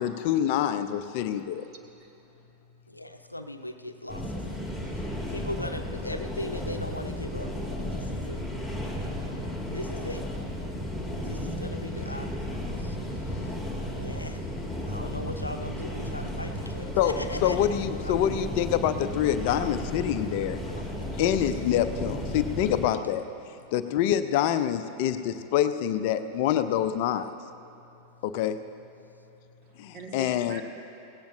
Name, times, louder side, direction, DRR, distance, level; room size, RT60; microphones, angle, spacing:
voice 1, 0.0-1.7 17.0-17.1 17.4-20.6 21.2-23.3 23.7-27.3 28.2-28.6 29.8-30.6, left 10 dB, 50° left, 10 dB, 0.5 m, -26 dB
voice 2, 1.6-2.4 29.6-30.6, right 3 dB, 45° right, 2 dB, 1.7 m, -45 dB
voice 3, 2.6-17.6 17.9-18.2 20.7-20.8 27.7-28.2 29.0-29.8, left 1 dB, 85° left, 7 dB, 0.7 m, -40 dB
sound 1, 4.1-22.9, equal, 5° right, 2.5 m, -34 dB
18.0 x 17.0 x 2.6 m, 2.8 s
figure-of-eight pair, 90°, 0 cm